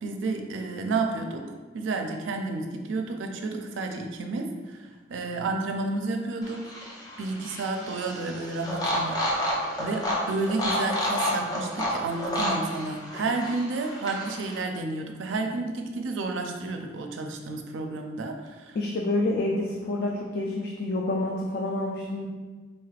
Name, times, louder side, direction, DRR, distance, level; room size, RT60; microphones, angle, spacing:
voice 1, 0.0-1.5 1.7-6.7 7.2-9.2 9.8-18.8, right 3 dB, 90° right, 4 dB, 0.4 m, -31 dB
sound 1, 6.4-14.6, left 1 dB, 20° left, 0.6 m, -30 dB
voice 2, 18.7-22.3, left 2 dB, 55° left, -1 dB, 0.4 m, -28 dB
4.0 x 3.2 x 2.4 m, 1.4 s
head